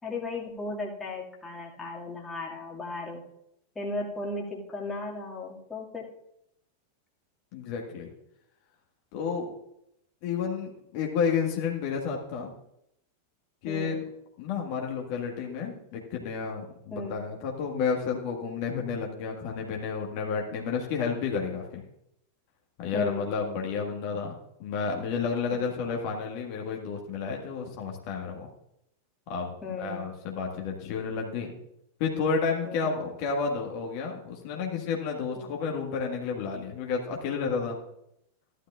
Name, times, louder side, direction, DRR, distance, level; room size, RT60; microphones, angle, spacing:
voice 1, 0.0-3.2 3.8-6.1 13.6-14.0 16.9-17.2 22.9-23.3 29.6-30.1 32.6-33.0 35.4-35.5, left 2 dB, 15° left, -3 dB, 2.2 m, -36 dB
voice 2, 7.5-8.1 9.1-9.5 10.2-12.5 13.6-14.0 14.4-21.8 22.8-28.5 29.3-31.5 32.0-37.8, left 5 dB, 45° left, 0 dB, 1.7 m, -31 dB
15.5 x 11.5 x 2.5 m, 0.80 s
figure-of-eight pair, 90°, 0 cm